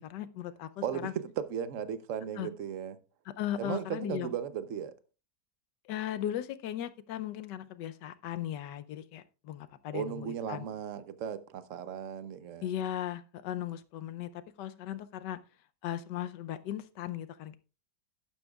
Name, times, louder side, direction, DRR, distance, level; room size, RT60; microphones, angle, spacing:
voice 1, 0.0-1.1 2.4-2.5 3.4-4.3 5.9-10.6 12.6-15.4 15.8-17.6, left 11 dB, 80° left, 1.3 m, -37 dB
voice 2, 0.8-3.0 3.6-4.9 9.9-12.8, right 8 dB, 55° right, 0.9 m, -36 dB
12.0 x 10.0 x 2.3 m
omnidirectional pair, 1.9 m